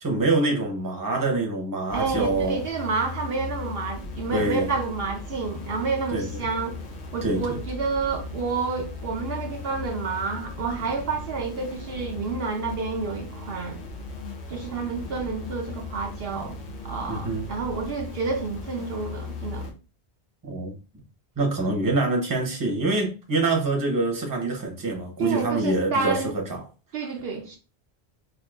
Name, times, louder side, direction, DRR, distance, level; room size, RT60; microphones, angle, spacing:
voice 1, 0.0-2.6 4.3-4.7 6.1-6.5 7.2-7.6 17.1-17.5 20.4-20.8 21.4-26.6, right 2 dB, 20° right, 0.8 m, -25 dB
sound 1, 1.9-19.7, left 4 dB, 85° left, 1.1 m, -37 dB
voice 2, 1.9-6.8 7.1-13.8 14.5-16.6 16.8-19.7 25.2-26.3 26.9-27.6, right 4 dB, 65° right, 0.8 m, -29 dB
4.6 x 2.8 x 2.4 m
omnidirectional pair, 1.1 m